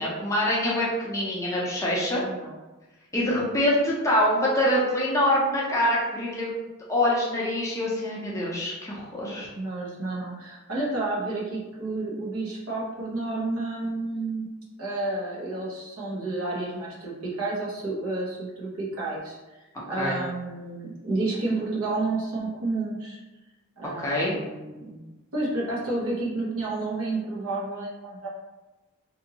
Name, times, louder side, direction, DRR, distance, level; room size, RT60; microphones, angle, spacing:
voice 1, 0.0-2.2 3.1-6.5 6.9-9.5 20.0-20.2 24.0-24.4, left 1 dB, 15° left, -5 dB, 0.5 m, -25 dB
voice 2, 2.2-2.5 9.3-14.5 14.8-19.4 19.9-23.2 23.8-25.0 25.3-28.3, right 2 dB, 65° right, -5 dB, 0.9 m, -30 dB
2.7 x 2.6 x 2.7 m, 1.1 s
head